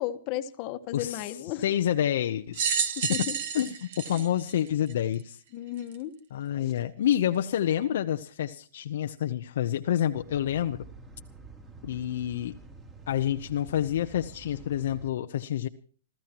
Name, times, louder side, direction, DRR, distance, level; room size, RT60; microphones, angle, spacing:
voice 1, 0.0-1.6 3.0-3.4 5.5-6.1, left 13 dB, 35° left, 8 dB, 1.3 m, -34 dB
voice 2, 0.9-3.3 3.5-5.4 6.3-10.9 11.8-12.6 13.1-15.7, left 11 dB, 65° left, 7 dB, 0.8 m, -28 dB
sound 1, 2.5-5.2 5.9-6.0 7.1-7.2, right 7 dB, 55° right, 2.0 m, -30 dB
sound 2, 10.1-15.1, right 3 dB, 20° right, 2.9 m, -48 dB
28.5 x 14.0 x 3.0 m, 0.43 s
hypercardioid pair, 150°, 0 cm